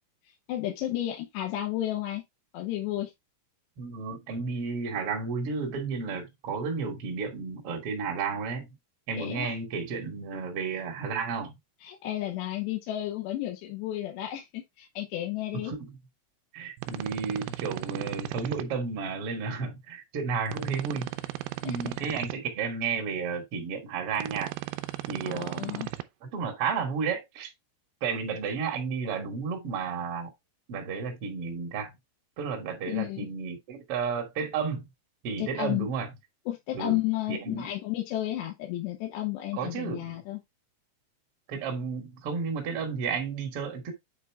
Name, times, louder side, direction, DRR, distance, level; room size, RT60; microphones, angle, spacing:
voice 1, 0.5-2.2 2.5-3.1 9.2-9.5 11.8-15.7 21.6-21.9 25.2-25.9 32.9-33.3 35.4-35.9 36.5-40.4, left 14 dB, 90° left, 3.3 m, -32 dB
voice 2, 3.8-8.7 9.1-11.5 15.5-15.9 16.5-21.1 21.6-24.5 25.1-25.8 26.2-27.5 28.0-30.3 30.7-31.9 32.4-34.9 35.2-36.1 36.7-37.0 37.3-37.7 39.5-40.2 41.5-43.9, right 5 dB, 60° right, 1.5 m, -32 dB
sound 1, 16.8-18.6 20.5-22.3 24.2-26.0, right 17 dB, 85° right, 2.2 m, -36 dB
8.3 x 4.1 x 3.4 m
omnidirectional pair, 4.9 m